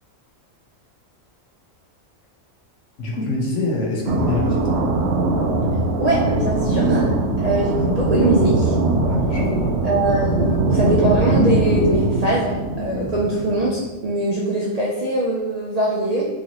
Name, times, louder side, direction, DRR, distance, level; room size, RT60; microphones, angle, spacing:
voice 1, 3.0-4.7 8.9-9.8, left 2 dB, 60° left, -2 dB, 1.1 m, -26 dB
sound 1, 4.1-13.9, right 2 dB, 65° right, 0.7 m, -21 dB
voice 2, 6.0-7.1 7.4-8.7 9.8-16.3, right 1 dB, 85° right, -4 dB, 0.3 m, -22 dB
3.9 x 3.1 x 2.9 m, 1.1 s
omnidirectional pair, 1.4 m